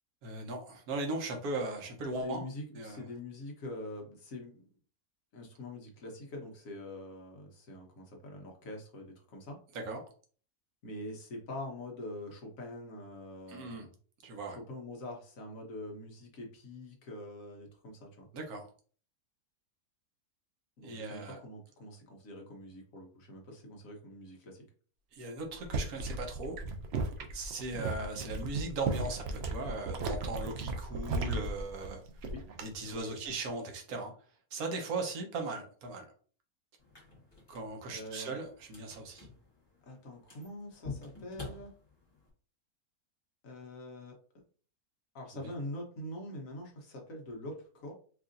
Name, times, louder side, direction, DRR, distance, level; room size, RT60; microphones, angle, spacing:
voice 1, 0.2-2.4 2.7-3.1 9.7-10.0 13.5-13.9 14.2-14.6 18.3-18.6 20.8-21.4 25.1-26.6 27.3-32.0 32.6-34.1 34.5-36.1 37.5-39.3 45.3-45.5, right 2 dB, 75° right, 3 dB, 1.4 m, -38 dB
voice 2, 2.2-4.7 5.3-9.6 10.8-13.9 14.5-18.3 20.8-24.6 32.3-32.4 32.8-33.2 37.9-38.4 39.9-41.7 43.4-44.1 45.1-47.9, left 1 dB, 60° left, 1 dB, 1.3 m, -44 dB
sound 1, 25.5-32.6 32.9-33.3, right 3 dB, 60° right, 0.7 m, -36 dB
sound 2, 36.8-42.3, left 4 dB, 20° left, 1.2 m, -49 dB
4.7 x 2.6 x 2.5 m, 0.42 s
omnidirectional pair, 1.6 m